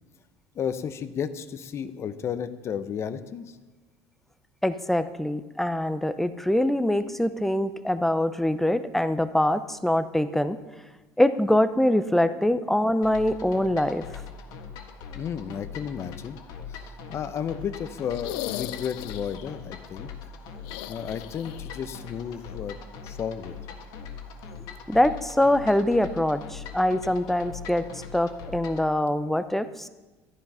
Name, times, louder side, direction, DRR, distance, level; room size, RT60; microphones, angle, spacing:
voice 1, 0.5-3.6 15.2-16.4 16.7-20.1 20.9-22.8 23.0-23.6, left 8 dB, 40° left, 12 dB, 0.8 m, -33 dB
voice 2, 4.6-10.6 11.2-14.0 24.9-29.9, left 1 dB, 5° left, 12 dB, 0.6 m, -24 dB
sound 1, 13.0-28.9, left 6 dB, 65° left, 1.6 m, -41 dB
sound 2, 18.1-19.5 20.6-21.8 22.1-22.2 23.8-23.9, left 16 dB, 80° left, 0.4 m, -37 dB
13.0 x 10.5 x 5.6 m, 1.2 s
cardioid pair, 130°, 7 cm